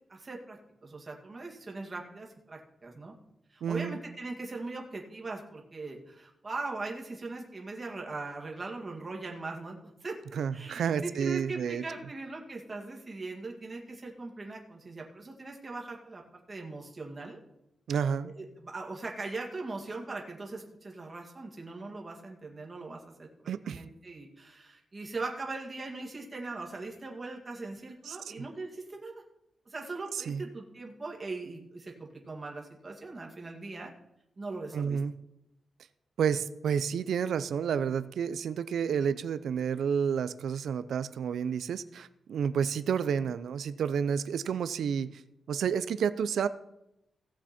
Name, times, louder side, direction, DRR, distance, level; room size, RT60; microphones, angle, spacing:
voice 1, 0.1-3.1 3.5-10.2 10.5-17.4 18.3-29.1 29.7-33.9 34.4-35.0, right 3 dB, 25° right, 0 dB, 2.1 m, -40 dB
voice 2, 3.6-4.0 10.4-11.8 17.9-18.3 23.5-23.8 28.1-28.5 30.1-30.4 34.7-35.1 36.2-45.2 45.5-46.5, right 7 dB, 85° right, 14 dB, 0.6 m, -30 dB
17.0 x 7.3 x 4.4 m, 0.84 s
wide cardioid pair, 155°, 0 cm